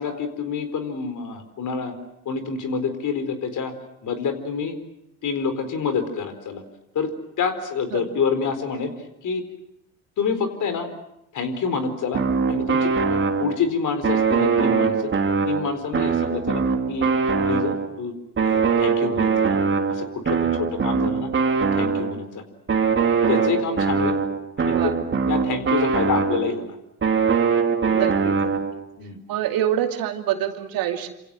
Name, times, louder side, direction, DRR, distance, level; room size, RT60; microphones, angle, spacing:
voice 1, 0.0-1.9 2.2-3.7 4.0-4.8 5.2-6.6 6.9-7.1 7.4-8.9 9.2-9.4 10.2-10.9 11.3-12.2 12.5-15.0 15.5-16.6 16.9-17.1 17.5-18.1 18.4-19.6 19.9-21.3 21.7-22.4 23.3-24.2 24.6-24.9 25.3-26.8 29.0-29.2, left 5 dB, 45° left, 10 dB, 4.4 m, -27 dB
sound 1, 12.1-13.7 14.0-18.0 18.4-22.3 22.7-26.6 27.0-28.8, right 5 dB, 30° right, 3.1 m, -22 dB
voice 2, 27.9-28.6 29.3-31.1, right 11 dB, 55° right, 5 dB, 2.7 m, -26 dB
27.5 x 27.0 x 6.4 m, 0.80 s
hypercardioid pair, 65°, 42 cm